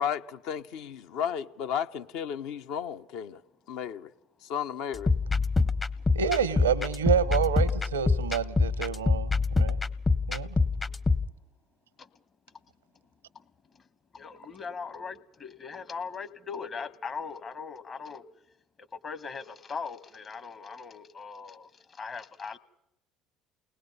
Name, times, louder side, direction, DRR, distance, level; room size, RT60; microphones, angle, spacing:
voice 1, 0.0-3.4 3.7-4.1 4.4-5.1, left 8 dB, 70° left, 0.7 m, -33 dB
sound 1, 4.9-11.3, left 3 dB, 25° left, 0.7 m, -26 dB
voice 2, 6.1-9.8 10.3-10.6, right 7 dB, 90° right, 0.7 m, -28 dB
voice 3, 14.1-18.2 19.0-22.6, left 5 dB, 40° left, 1.1 m, -39 dB
29.0 x 19.5 x 5.4 m
hypercardioid pair, 65°, 0 cm